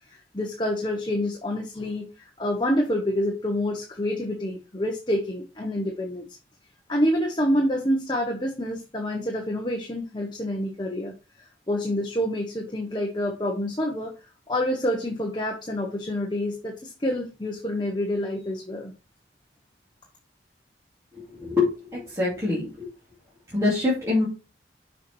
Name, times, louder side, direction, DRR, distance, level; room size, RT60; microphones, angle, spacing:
voice 1, 0.1-2.1 2.4-6.3 6.9-11.1 11.7-14.1 14.5-18.9, left 1 dB, 25° left, 1 dB, 1.1 m, -27 dB
voice 2, 21.1-22.9 23.5-24.3, left 2 dB, 15° right, -7 dB, 2.8 m, -25 dB
6.7 x 4.7 x 4.6 m, 0.30 s
head